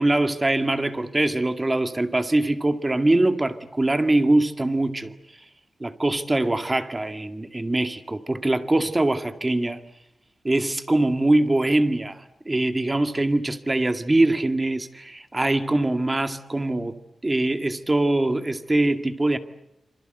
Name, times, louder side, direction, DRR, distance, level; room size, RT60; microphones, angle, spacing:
voice 1, 0.0-5.1 5.8-9.8 10.4-17.0 17.2-19.4, right 2 dB, 20° right, 2.1 m, -23 dB
27.0 x 26.5 x 8.0 m
wide cardioid pair, 105°, 0 cm